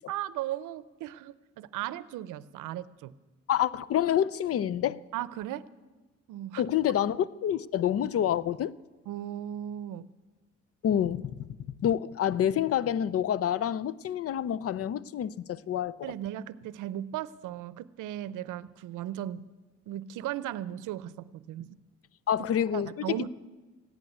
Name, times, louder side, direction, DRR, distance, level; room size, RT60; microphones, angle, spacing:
voice 1, 0.1-3.2 5.1-5.6 6.3-6.6 9.1-10.1 16.0-19.5 19.9-21.8 22.7-23.3, right 12 dB, 90° right, 0.6 m, -36 dB
voice 2, 3.5-5.0 6.6-8.7 10.8-15.9 22.3-23.3, left 10 dB, 50° left, 0.5 m, -28 dB
15.5 x 11.0 x 8.1 m
cardioid pair, 90°, 30 cm